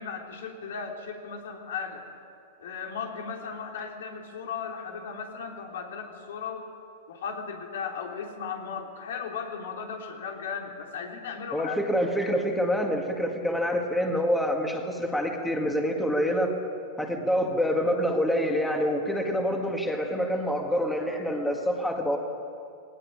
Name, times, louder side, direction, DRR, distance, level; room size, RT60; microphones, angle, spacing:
voice 1, 0.0-2.0 2.6-6.6 7.1-11.8, left 6 dB, 85° left, 1 dB, 3.6 m, -36 dB
voice 2, 11.5-16.5 17.0-22.2, equal, 5° left, 2 dB, 1.9 m, -26 dB
19.0 x 18.5 x 10.0 m, 2.5 s
supercardioid pair, 155°, 0 cm